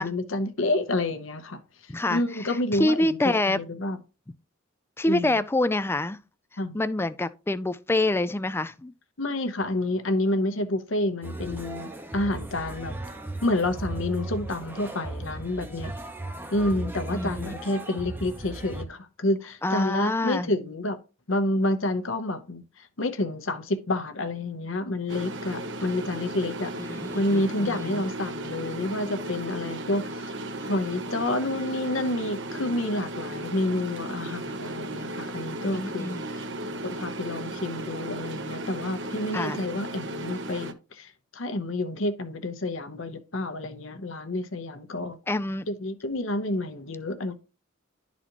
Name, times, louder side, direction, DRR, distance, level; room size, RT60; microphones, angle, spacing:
voice 1, 0.0-1.6 2.1-4.0 5.1-5.4 6.6-6.8 9.2-13.0 13.4-15.9 16.5-21.0 21.3-30.3 30.6-45.2 45.7-47.3, left 1 dB, 65° left, 1.0 m, -29 dB
voice 2, 1.9-3.6 5.0-6.2 6.7-8.9 17.1-17.5 19.6-20.5 26.9-28.0 35.7-36.2 39.3-39.6 45.3-45.7, left 2 dB, 10° left, 0.3 m, -26 dB
sound 1, 11.2-18.8, right 2 dB, 10° right, 0.8 m, -36 dB
sound 2, 25.1-40.7, right 1 dB, 60° right, 0.8 m, -35 dB
11.5 x 4.1 x 2.9 m
head